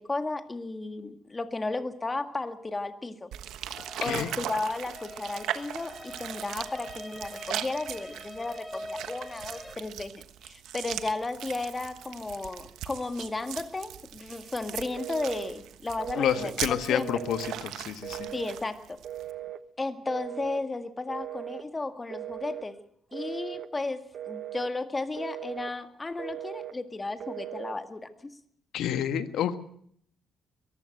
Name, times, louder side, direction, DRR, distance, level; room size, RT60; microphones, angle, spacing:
voice 1, 0.0-3.3 4.0-17.1 18.3-19.0 19.8-22.8 23.1-28.1, left 3 dB, 20° left, 9 dB, 1.9 m, -34 dB
sound 1, 3.3-19.3, right 11 dB, 85° right, 1.2 m, -39 dB
sound 2, 3.7-9.8, left 1 dB, 5° left, 1.9 m, -44 dB
voice 2, 4.0-4.3 16.1-18.3 28.7-29.6, left 9 dB, 80° left, 11 dB, 1.6 m, -29 dB
Telephone, 15.0-15.5 16.0-16.6 17.0-17.6 18.0-18.6 19.0-19.6 20.1-20.6 21.1-21.7 22.1-22.7 23.1-23.7 24.1-24.7 25.1-25.7 26.2-26.8 27.2-27.8, right 12 dB, 65° right, 1.0 m, -39 dB
22.5 x 15.0 x 8.0 m, 0.65 s
cardioid pair, 90°, 0 cm